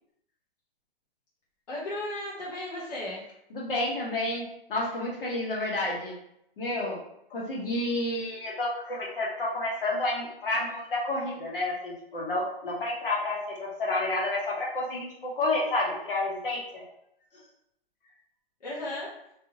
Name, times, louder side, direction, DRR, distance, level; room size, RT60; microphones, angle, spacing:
voice 1, 1.7-3.2 18.6-19.1, left 1 dB, 45° left, -6 dB, 0.8 m, -35 dB
voice 2, 3.5-6.1 6.6-7.0 7.3-16.8 17.3-17.4, left 2 dB, 65° left, -3 dB, 1.1 m, -30 dB
2.7 x 2.6 x 2.8 m, 0.79 s
hypercardioid pair, 175°, 30 cm